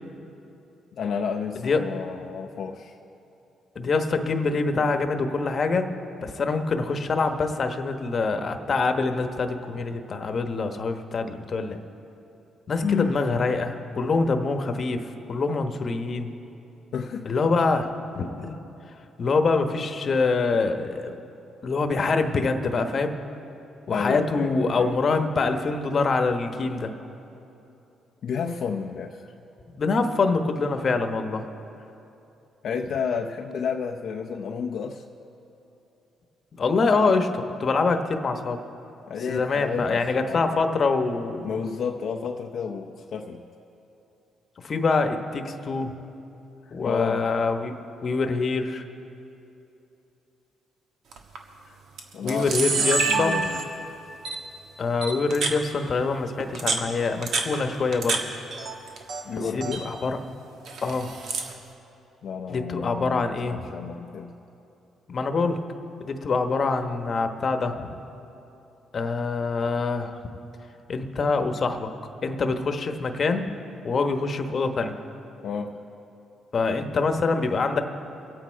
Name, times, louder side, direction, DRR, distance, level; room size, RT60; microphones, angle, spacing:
voice 1, 0.9-3.0 12.8-13.2 16.9-17.3 23.9-24.9 28.2-29.3 32.6-35.0 39.1-40.6 41.4-43.4 46.7-47.2 52.1-53.6 59.2-59.9 62.2-64.3 75.4-75.8, left 6 dB, 65° left, 1 dB, 0.6 m, -31 dB
voice 2, 3.7-5.9 6.2-11.8 12.7-16.3 17.2-18.6 19.2-21.2 21.6-23.1 23.9-26.9 29.7-31.4 36.6-38.6 39.3-41.5 44.6-45.9 46.7-48.8 52.2-53.4 54.8-58.2 59.5-60.2 60.8-61.1 62.5-63.7 65.1-65.6 66.0-67.9 68.9-70.2 70.9-71.9 72.2-73.5 73.8-74.9 76.5-77.8, left 4 dB, 45° left, 6 dB, 1.1 m, -25 dB
Camera, 51.1-51.4 52.0-52.1 52.3-53.8 54.2-54.4 55.0-55.6 56.4-58.2 58.5-59.2 59.5-59.8 60.6-61.5, right 4 dB, 70° right, 1.4 m, -27 dB
24.5 x 8.6 x 4.5 m, 2.9 s
cardioid pair, 90°, 0 cm